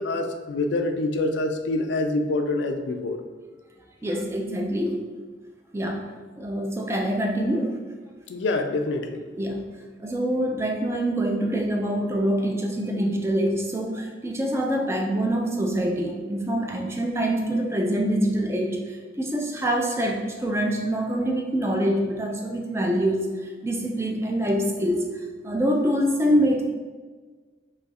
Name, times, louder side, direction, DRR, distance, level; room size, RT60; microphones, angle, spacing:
voice 1, 0.0-3.2 8.3-9.2, left 2 dB, 70° left, 6 dB, 0.4 m, -26 dB
voice 2, 4.0-5.1 5.7-7.7 9.4-9.6 10.0-18.8 19.2-23.3 23.6-25.1 25.4-26.6, equal, 15° right, 1 dB, 0.3 m, -25 dB
2.9 x 2.4 x 4.0 m, 1.4 s
head